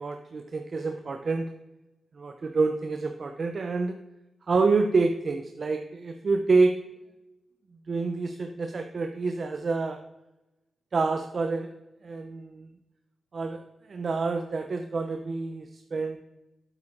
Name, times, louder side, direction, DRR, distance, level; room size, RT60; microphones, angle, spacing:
voice 1, 0.0-1.5 2.2-4.0 4.5-6.8 7.9-10.0 10.9-11.7 12.0-12.7 13.3-13.6 13.9-16.2, right 3 dB, 50° right, 6 dB, 0.6 m, -27 dB
8.9 x 8.0 x 3.7 m, 0.97 s
wide cardioid pair, 100°, 0 cm